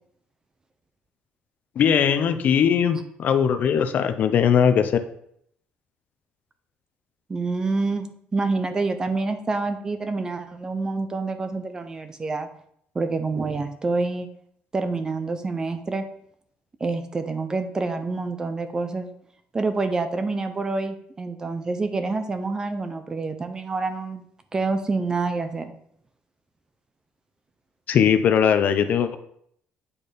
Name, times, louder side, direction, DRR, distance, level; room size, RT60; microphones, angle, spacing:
voice 1, 1.8-4.9 27.9-29.2, left 8 dB, 45° left, 9 dB, 0.6 m, -20 dB
voice 2, 7.3-12.5 12.9-14.3 14.7-16.0 16.8-19.1 19.5-24.2 24.5-25.7, right 3 dB, 20° right, 9 dB, 0.7 m, -27 dB
8.5 x 4.3 x 5.1 m, 0.68 s
cardioid pair, 160°, 4 cm